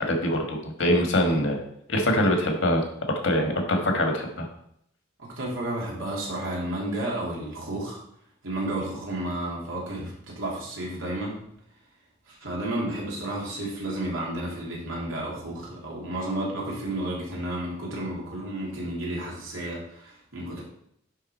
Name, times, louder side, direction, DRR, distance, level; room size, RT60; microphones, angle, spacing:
voice 1, 0.0-1.6 1.9-2.8 3.2-4.5, left 1 dB, 70° left, 3 dB, 1.5 m, -23 dB
voice 2, 5.2-8.0 8.4-11.4 12.3-20.6, right 1 dB, 85° right, -4 dB, 2.7 m, -32 dB
10.0 x 3.7 x 4.3 m, 0.72 s
head